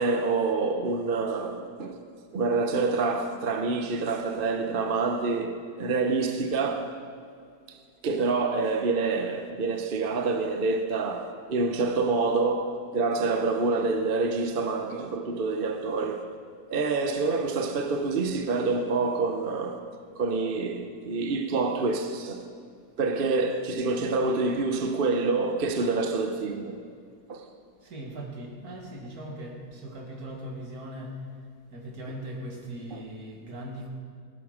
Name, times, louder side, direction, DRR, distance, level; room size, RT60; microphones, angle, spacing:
voice 1, 0.0-2.0 2.3-7.0 7.7-7.8 8.0-16.3 16.7-19.8 20.2-22.5 23.0-26.8 27.3-27.5 32.9-33.0, right 3 dB, 45° right, 0.8 m, -27 dB
voice 2, 27.8-31.3 31.7-33.9, right 1 dB, 60° right, 2.4 m, -39 dB
16.5 x 12.5 x 5.0 m
omnidirectional pair, 1.8 m